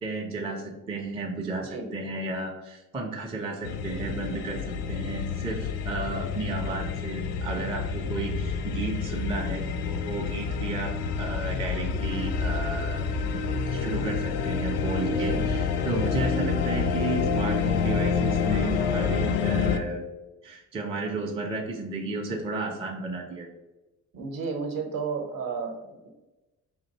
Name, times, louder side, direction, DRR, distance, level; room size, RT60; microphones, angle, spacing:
voice 1, 0.0-10.9 11.2-13.4 13.7-20.1 20.4-23.5, right 3 dB, 10° right, 1 dB, 0.5 m, -33 dB
sound 1, 3.6-19.8, left 5 dB, 60° left, 0.5 m, -28 dB
voice 2, 15.1-15.5 24.1-26.1, right 5 dB, 45° right, 5 dB, 0.8 m, -33 dB
4.3 x 2.5 x 2.8 m, 1.0 s
figure-of-eight pair, 45°, 48 cm